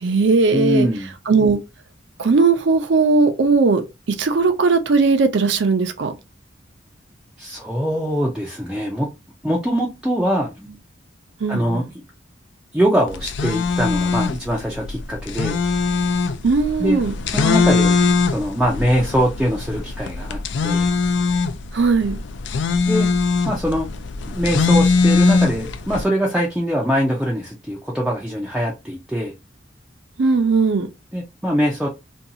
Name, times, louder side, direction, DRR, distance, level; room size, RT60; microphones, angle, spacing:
voice 1, 0.0-0.9 1.3-1.6 2.2-3.8 4.1-6.1 11.4-11.9 16.4-17.1 21.7-22.2 30.2-30.9, right 4 dB, 65° right, 0.5 m, -18 dB
voice 2, 0.5-1.1 7.4-9.1 9.4-10.8 11.5-11.8 12.7-15.6 16.8-17.0 17.3-18.0 18.3-20.9 22.9-23.1 23.5-23.9 24.3-29.3 31.1-31.9, equal, 5° right, 0.4 m, -22 dB
sound 1, 13.1-26.0, left 4 dB, 65° left, 0.3 m, -21 dB
2.6 x 2.3 x 2.7 m
head